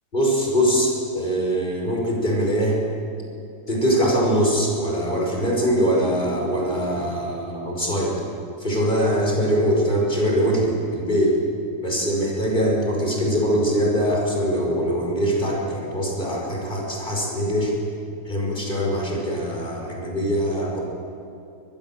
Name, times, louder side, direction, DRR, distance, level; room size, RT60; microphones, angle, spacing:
voice 1, 0.1-2.8 3.7-8.1 8.6-11.4 11.8-17.7 18.3-20.8, equal, 30° left, -2 dB, 5.5 m, -22 dB
25.0 x 20.5 x 7.5 m, 2.8 s
omnidirectional pair, 1.7 m